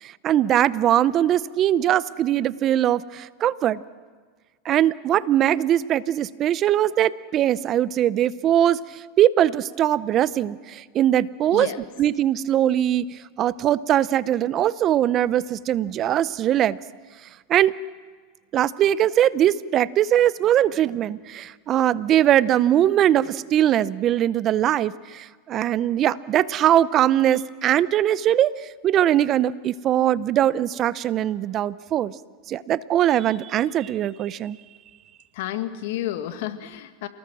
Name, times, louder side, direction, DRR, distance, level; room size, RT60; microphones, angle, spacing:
voice 1, 0.0-3.8 4.6-11.7 12.0-16.8 17.5-17.8 18.5-32.1 32.5-34.6, right 11 dB, 40° right, 18 dB, 0.6 m, -21 dB
voice 2, 11.5-11.8 35.3-37.1, left 13 dB, 70° left, 8 dB, 1.8 m, -31 dB
28.5 x 19.5 x 6.2 m, 1.5 s
supercardioid pair, 120°, 0 cm